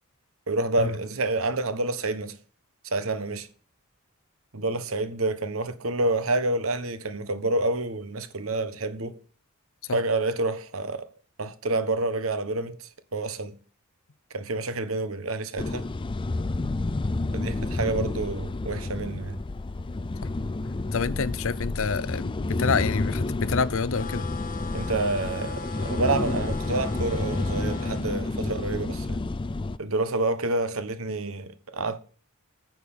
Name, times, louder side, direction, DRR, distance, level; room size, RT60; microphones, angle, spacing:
voice 1, 0.5-2.3 2.8-3.5 4.5-9.2 9.9-11.1 11.4-13.5 14.3-15.8 17.3-19.4 24.7-29.2 29.8-32.0, right 2 dB, 70° right, 1.3 m, -28 dB
sound 1, 15.6-29.8, left 2 dB, 25° left, 0.4 m, -30 dB
voice 2, 20.9-24.3, left 5 dB, 65° left, 0.7 m, -27 dB
sound 2, 23.9-28.1, left 4 dB, 40° left, 1.1 m, -39 dB
9.2 x 6.7 x 7.0 m
head